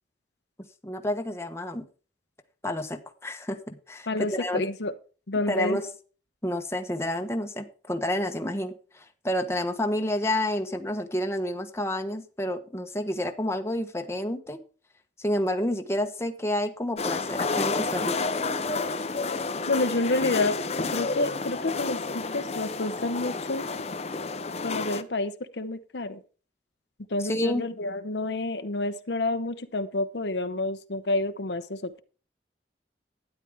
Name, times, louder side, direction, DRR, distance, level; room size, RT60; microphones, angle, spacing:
voice 1, 0.8-1.8 2.6-4.6 5.5-5.9 6.4-14.6 15.2-18.3 27.2-27.7, left 1 dB, 15° left, 6 dB, 1.1 m, -29 dB
voice 2, 4.1-4.9 5.3-5.8 19.7-20.6 20.9-23.6 24.6-26.2 27.1-32.0, left 2 dB, 70° left, 10 dB, 0.9 m, -29 dB
sound 1, 17.0-25.0, left 3 dB, 35° left, 0.8 m, -30 dB
12.5 x 10.0 x 3.5 m, 0.37 s
head